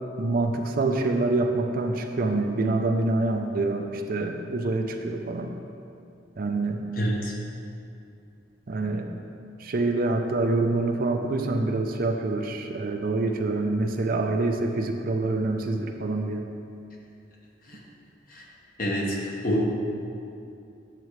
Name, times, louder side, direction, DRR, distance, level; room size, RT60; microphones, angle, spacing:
voice 1, 0.2-5.5 6.4-6.8 8.7-9.2 9.6-16.4, right 2 dB, 50° right, 4 dB, 0.5 m, -26 dB
voice 2, 7.0-7.3 17.7-17.8 18.3-18.4 18.8-19.7, equal, 50° left, -2 dB, 1.1 m, -27 dB
9.0 x 6.7 x 3.1 m, 2.6 s
head